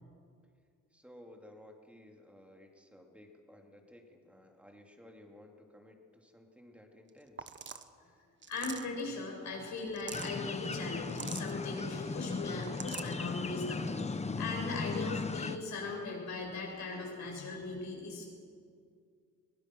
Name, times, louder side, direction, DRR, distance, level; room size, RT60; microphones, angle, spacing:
voice 1, 0.9-7.5, left 1 dB, 5° right, 2 dB, 3.0 m, -56 dB
sound 1, 7.1-7.2 7.4-7.9 8.4-9.0 9.8-10.3 11.1-11.5 12.5-13.1, right 6 dB, 40° right, 1.2 m, -44 dB
voice 2, 8.5-18.2, left 3 dB, 65° left, 0 dB, 7.0 m, -39 dB
sound 2, 10.1-15.6, left 4 dB, 20° left, 1.0 m, -37 dB
22.5 x 18.5 x 6.3 m, 2.2 s
cardioid pair, 90°, 30 cm